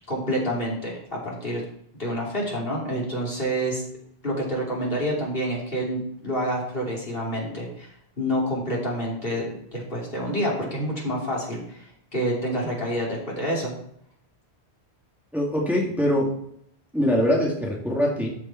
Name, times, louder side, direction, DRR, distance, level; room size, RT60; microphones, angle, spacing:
voice 1, 0.1-1.6 2.0-3.8 4.2-11.9 12.1-13.7, equal, 55° left, -4 dB, 3.2 m, -28 dB
voice 2, 15.3-16.3 16.9-18.4, equal, ahead, -3 dB, 1.9 m, -23 dB
13.0 x 5.3 x 4.4 m, 0.69 s
omnidirectional pair, 1.1 m